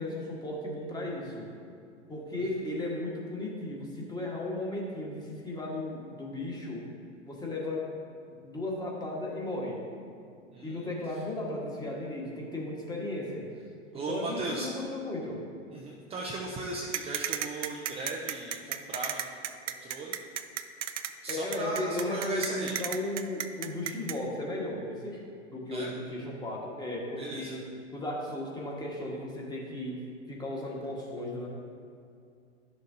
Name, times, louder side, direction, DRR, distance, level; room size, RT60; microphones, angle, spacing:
voice 1, 0.0-1.5 2.1-6.9 7.2-7.8 8.3-9.8 10.6-13.5 13.9-15.4 21.3-25.2 25.5-27.6 27.9-30.0 30.3-31.5, left 1 dB, 10° left, -3 dB, 1.5 m, -35 dB
voice 2, 10.5-10.9 13.9-14.7 15.7-19.4 19.7-20.2 21.2-22.8 25.7-25.9 27.2-27.6, right 2 dB, 15° right, -2 dB, 0.6 m, -37 dB
sound 1, 16.9-24.2, right 10 dB, 75° right, 0.6 m, -33 dB
11.0 x 6.7 x 2.7 m, 2.4 s
hypercardioid pair, 105°, 36 cm